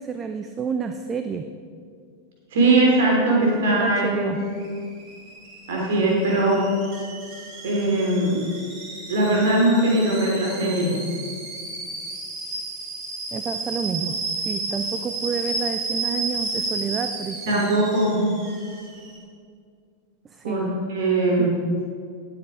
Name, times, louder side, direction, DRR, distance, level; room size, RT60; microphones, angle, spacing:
voice 1, 0.0-1.5 3.4-4.4 13.3-14.1 14.5-17.6 20.3-20.6 21.4-21.5, right 6 dB, 20° right, 8 dB, 0.6 m, -29 dB
voice 2, 2.5-4.4 5.7-6.6 7.6-8.4 9.1-11.0 17.5-18.2 20.4-21.5, right 2 dB, 55° right, -2 dB, 3.5 m, -20 dB
Alarm / Boiling, 4.3-19.2, right 3 dB, 40° right, 4.0 m, -33 dB
18.5 x 7.9 x 5.1 m, 2.2 s
figure-of-eight pair, 90°, 0 cm